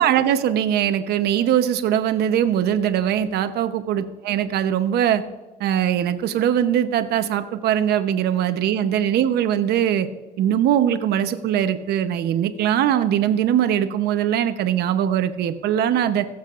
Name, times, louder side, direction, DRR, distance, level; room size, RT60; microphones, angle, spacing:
voice 1, 0.0-5.2 5.6-10.1 10.4-16.3, right 10 dB, 75° right, 10 dB, 0.9 m, -21 dB
21.5 x 7.3 x 2.5 m, 1.2 s
cardioid pair, 110°, 17 cm